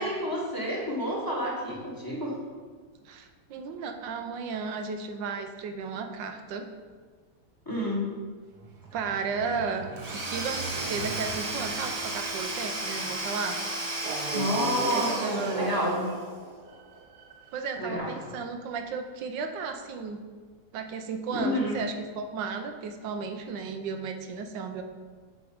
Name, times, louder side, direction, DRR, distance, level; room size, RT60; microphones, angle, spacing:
voice 1, 0.0-2.3 7.6-8.0 14.3-16.1 17.8-18.4 21.3-21.8, equal, 15° left, -3 dB, 1.4 m, -29 dB
voice 2, 3.0-6.7 8.9-9.9 10.1-13.6 14.9-15.6 17.5-20.2 20.7-24.8, right 5 dB, 85° right, 6 dB, 1.4 m, -34 dB
sound 1, 8.5-13.2 14.0-17.6, right 3 dB, 70° right, 1.3 m, -38 dB
Domestic sounds home sounds / Tools, 10.0-16.1, right 2 dB, 50° right, 0.4 m, -33 dB
8.0 x 4.6 x 5.0 m, 1.5 s
omnidirectional pair, 1.9 m